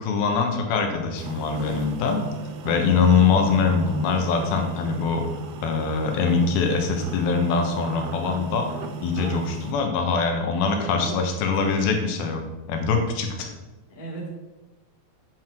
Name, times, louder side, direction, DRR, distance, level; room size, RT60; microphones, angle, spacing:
voice 1, 0.0-2.2 2.6-5.3 5.6-8.7 9.0-12.4 12.7-13.5, left 5 dB, 80° left, 4 dB, 3.0 m, -23 dB
sound 1, 1.2-9.7, right 3 dB, 75° right, 2.1 m, -35 dB
voice 2, 10.6-11.2 11.6-11.8 13.9-14.3, right 3 dB, 15° left, -4 dB, 1.8 m, -35 dB
9.3 x 7.7 x 4.5 m, 1.1 s
omnidirectional pair, 4.3 m